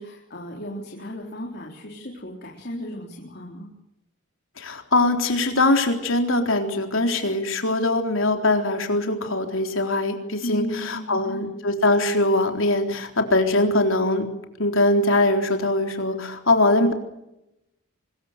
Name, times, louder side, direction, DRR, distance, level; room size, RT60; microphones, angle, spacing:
voice 1, 0.0-3.7 10.4-11.5, equal, 50° left, -1 dB, 3.9 m, -35 dB
voice 2, 4.6-14.3 14.6-16.9, left 2 dB, 70° left, 5 dB, 3.9 m, -22 dB
24.5 x 22.0 x 6.8 m, 0.87 s
head